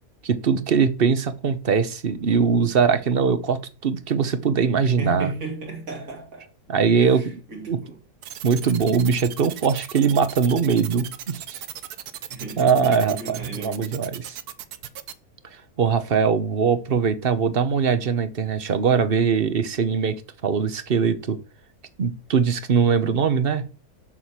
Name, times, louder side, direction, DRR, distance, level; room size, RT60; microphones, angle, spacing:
voice 1, 0.2-5.3 6.7-7.2 7.7-7.8 8.4-11.6 12.6-14.4 15.8-20.1 20.4-21.4 22.0-23.6, right 6 dB, 45° right, 1.0 m, -21 dB
voice 2, 5.0-6.5 7.0-8.0 12.3-13.9, right 3 dB, 65° right, 2.7 m, -34 dB
sound 1, 8.2-15.1, right 10 dB, 85° right, 1.3 m, -37 dB
7.3 x 6.4 x 5.7 m
omnidirectional pair, 1.6 m